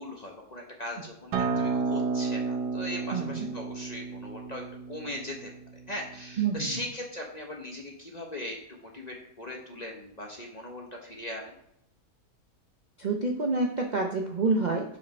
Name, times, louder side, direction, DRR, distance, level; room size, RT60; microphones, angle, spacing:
voice 1, 0.0-5.5 5.9-11.5, left 1 dB, 30° left, 0 dB, 0.8 m, -39 dB
Acoustic guitar, 1.3-6.5, right 4 dB, 75° right, 1.3 m, -32 dB
voice 2, 3.1-3.5 6.4-6.8 13.0-15.0, right 3 dB, 55° right, 1 dB, 0.5 m, -28 dB
5.2 x 5.1 x 5.2 m, 0.76 s
omnidirectional pair, 1.8 m